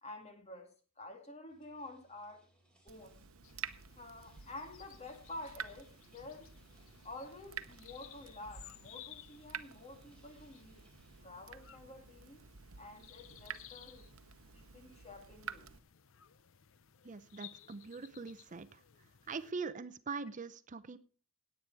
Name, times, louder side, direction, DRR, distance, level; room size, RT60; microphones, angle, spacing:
voice 1, 0.0-2.4 2.8-3.2 4.0-6.6 7.0-10.9 11.2-12.4 12.8-14.1 14.5-15.7, left 2 dB, 30° left, 2.2 m, -50 dB
sound 1, 1.5-11.2, right 1 dB, 5° left, 3.5 m, -70 dB
Water tap faucet / Drip, 2.9-15.8, right 8 dB, 90° right, 0.8 m, -50 dB
sound 2, 3.4-19.5, left 11 dB, 70° left, 0.6 m, -59 dB
voice 2, 17.0-18.8 19.3-21.0, right 4 dB, 40° right, 0.6 m, -42 dB
16.5 x 9.0 x 4.7 m
head